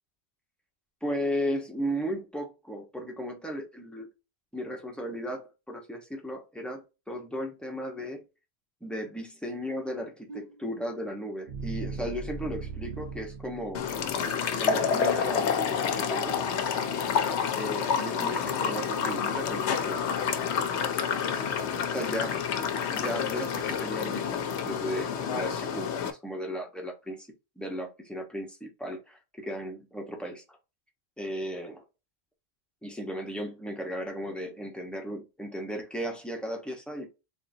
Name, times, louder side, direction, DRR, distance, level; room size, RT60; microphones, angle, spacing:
voice 1, 1.0-4.1 4.5-8.2 8.8-13.8 14.6-16.4 17.5-20.2 21.9-22.5 22.9-27.3 27.6-30.6 31.2-31.8 32.8-37.1, equal, ahead, 0.9 m, -35 dB
sound 1, 10.3-14.4, right 4 dB, 45° right, 0.9 m, -39 dB
sound 2, 13.7-26.1, left 7 dB, 85° left, 0.9 m, -29 dB
3.8 x 3.6 x 2.7 m
omnidirectional pair, 1.1 m